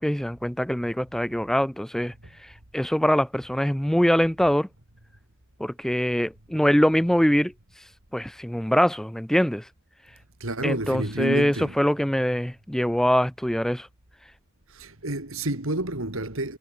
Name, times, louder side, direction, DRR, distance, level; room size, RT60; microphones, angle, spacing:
voice 1, 0.0-2.1 2.4-4.7 5.6-7.5 8.1-9.7 10.6-13.9, equal, ahead, 0.4 m, -23 dB
voice 2, 10.4-11.8 14.7-16.6, right 1 dB, 80° right, 3.7 m, -29 dB
head